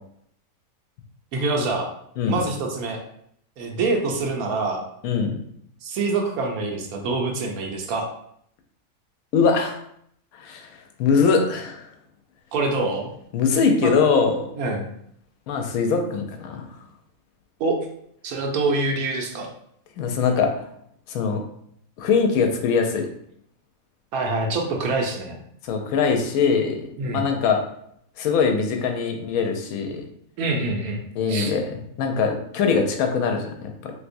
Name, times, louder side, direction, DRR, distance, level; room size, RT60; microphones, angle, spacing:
voice 1, 1.3-1.9 2.3-3.0 3.6-4.8 5.8-8.1 12.5-13.1 13.8-13.9 14.6-14.9 17.6-17.8 18.2-19.5 24.1-25.4 27.0-27.3 30.4-31.0 31.3-31.5, right 3 dB, 85° right, 2 dB, 1.1 m, -25 dB
voice 2, 5.0-5.4 9.3-9.8 10.3-10.7 11.0-11.9 13.3-14.5 15.5-16.7 20.0-20.7 21.1-21.4 22.0-23.1 25.6-27.6 28.2-30.0 31.2-33.9, left 5 dB, 80° left, 4 dB, 1.0 m, -22 dB
3.3 x 2.8 x 2.5 m, 0.70 s
omnidirectional pair, 1.5 m